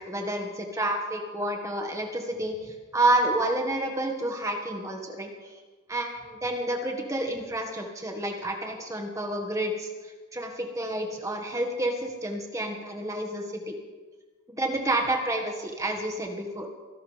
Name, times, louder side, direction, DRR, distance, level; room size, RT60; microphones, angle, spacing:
voice 1, 0.1-5.3 5.9-9.9 10.3-13.7 14.5-16.7, right 1 dB, 15° right, 2 dB, 1.7 m, -29 dB
25.0 x 12.0 x 3.4 m, 1.3 s
head